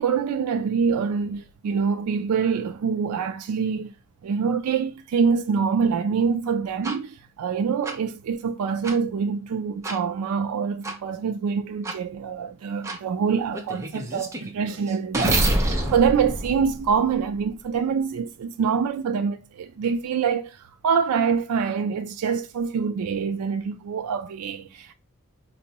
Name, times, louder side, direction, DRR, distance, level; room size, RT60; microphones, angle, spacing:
voice 1, 0.0-3.9 4.2-24.9, right 6 dB, 80° right, 0.3 m, -25 dB
sound 1, 6.8-7.0 7.8-8.0 8.8-9.0 9.8-10.0 10.8-11.0 11.8-12.0 12.8-13.0 13.5-17.4, right 1 dB, 15° right, 0.5 m, -27 dB
4.4 x 2.0 x 2.8 m
head